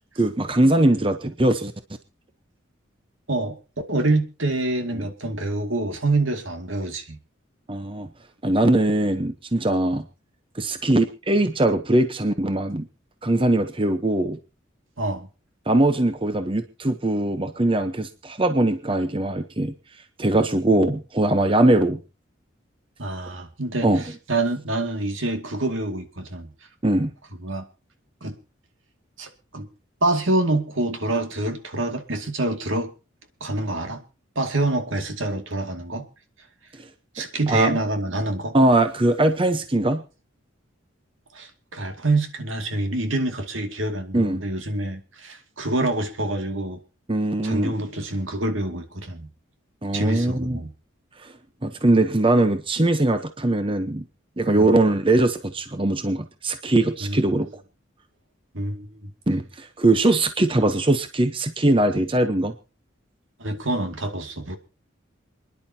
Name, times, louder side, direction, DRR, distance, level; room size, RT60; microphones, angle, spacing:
voice 1, 0.2-1.7 7.7-8.1 8.4-10.1 10.5-12.9 13.2-14.4 15.7-19.7 20.2-22.0 23.8-24.0 26.8-27.1 36.8-36.9 37.5-37.8 38.5-40.0 44.1-44.4 47.1-47.7 49.8-50.6 51.2-51.3 51.6-54.1 54.4-57.5 59.3-62.5, right 2 dB, 25° right, 9 dB, 0.9 m, -21 dB
voice 2, 3.9-7.2 15.0-15.3 23.0-26.5 27.4-27.6 28.2-28.4 29.2-29.7 30.0-32.9 33.4-34.0 34.4-36.0 37.1-38.6 41.3-46.8 47.4-49.3 49.9-50.7 54.6-54.7 57.0-57.2 58.5-59.1 63.4-64.6, right 2 dB, 75° right, 6 dB, 2.3 m, -26 dB
28.0 x 11.0 x 2.9 m, 0.33 s
head